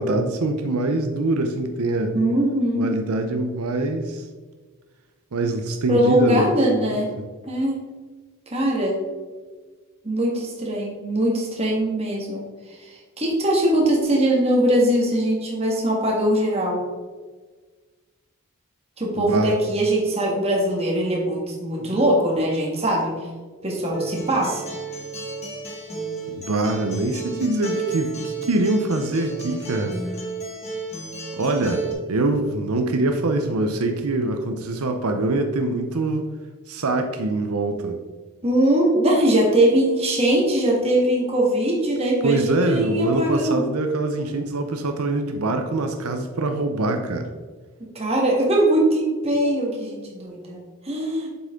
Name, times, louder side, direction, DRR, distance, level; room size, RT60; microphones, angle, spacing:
voice 1, 0.0-2.1 2.8-4.2 5.3-6.5 6.8-7.0 19.2-19.5 26.3-30.0 31.4-36.2 36.7-38.0 42.2-47.3, right 2 dB, 85° right, 5 dB, 0.7 m, -24 dB
voice 2, 2.1-2.9 5.9-7.1 7.5-7.8 8.5-9.0 10.0-12.4 12.8-16.8 19.0-23.3 23.6-24.6 38.4-43.6 47.8-51.3, right 1 dB, 25° right, -2 dB, 1.6 m, -21 dB
Acoustic guitar, 23.9-31.9, right 3 dB, 30° left, 1.4 m, -32 dB
7.6 x 5.9 x 3.7 m, 1.4 s
head